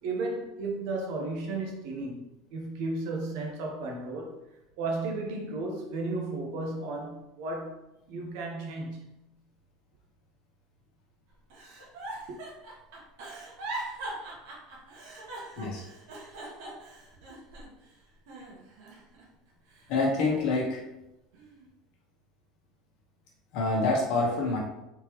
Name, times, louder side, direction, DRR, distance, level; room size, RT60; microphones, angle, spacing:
voice 1, 0.0-4.4 4.8-9.2 12.3-12.4, right 2 dB, 55° right, 0.7 m, -34 dB
Giggle, 11.5-17.9 18.3-19.2 19.7-20.8 21.3-21.7, right 2 dB, 75° right, 1.2 m, -41 dB
voice 2, 19.9-20.8 23.5-24.6, left 3 dB, 50° left, 1.0 m, -26 dB
3.6 x 3.1 x 3.0 m
cardioid pair, 180°, 0 cm